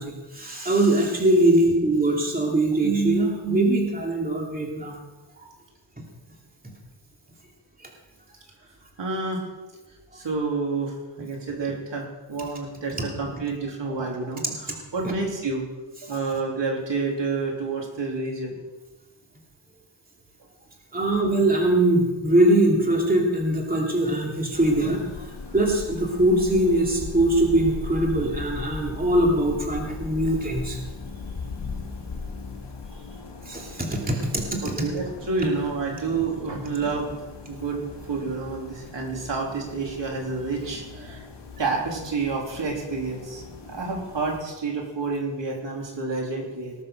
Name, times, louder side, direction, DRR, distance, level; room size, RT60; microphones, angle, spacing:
voice 1, 0.0-5.0 5.4-5.5 15.0-15.1 20.9-25.3 25.5-30.8 33.4-34.6, right 1 dB, 20° right, -1 dB, 2.9 m, -22 dB
voice 2, 9.0-9.4 10.1-15.6 16.0-18.5 34.6-37.2 37.5-41.2 41.6-46.7, right 4 dB, 60° right, -1 dB, 3.5 m, -29 dB
sound 1, 24.5-44.4, left 4 dB, 55° left, 2.7 m, -39 dB
19.0 x 7.5 x 6.7 m, 1.2 s
wide cardioid pair, 95°, 49 cm